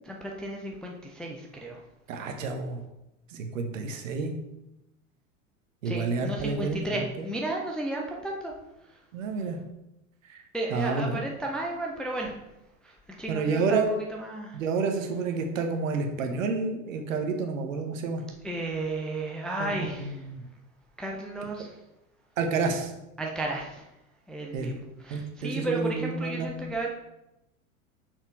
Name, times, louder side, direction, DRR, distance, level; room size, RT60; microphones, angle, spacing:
voice 1, 0.1-1.8 5.8-8.5 8.9-9.0 10.5-12.4 12.8-14.6 18.4-20.3 21.0-21.8 23.2-23.9 24.3-26.9, right 2 dB, ahead, -1 dB, 0.4 m, -33 dB
voice 2, 2.1-2.8 3.3-4.3 5.8-7.0 9.1-9.6 10.7-11.2 13.3-13.9 14.5-18.2 19.6-20.4 22.4-22.9 24.5-24.8 25.1-26.7, right 4 dB, 60° right, 4 dB, 1.2 m, -29 dB
6.0 x 4.2 x 4.6 m, 0.92 s
figure-of-eight pair, 85°, 43 cm